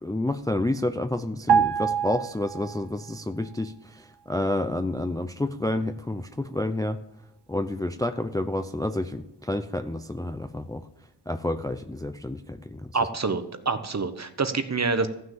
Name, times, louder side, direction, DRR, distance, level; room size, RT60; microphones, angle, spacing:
voice 1, 0.0-7.0 7.5-10.8 11.3-12.9, left 1 dB, 10° left, 10 dB, 0.5 m, -29 dB
sound 1, 1.5-3.1 3.4-3.6, right 7 dB, 60° right, 0.7 m, -25 dB
voice 2, 12.9-15.1, right 4 dB, 35° right, 10 dB, 1.0 m, -26 dB
14.0 x 6.4 x 7.3 m, 0.87 s
wide cardioid pair, 75°, 44 cm